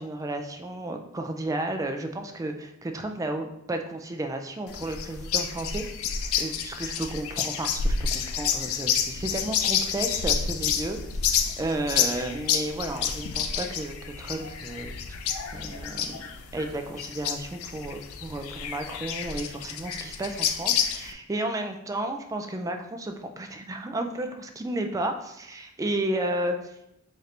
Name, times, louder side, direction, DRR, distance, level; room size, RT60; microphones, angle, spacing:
voice 1, 0.0-14.9 15.5-16.2 16.5-26.6, right 1 dB, 15° right, 5 dB, 0.3 m, -33 dB
sound 1, 4.7-21.1, left 7 dB, 80° left, 0.4 m, -29 dB
4.2 x 2.5 x 3.2 m, 0.84 s
head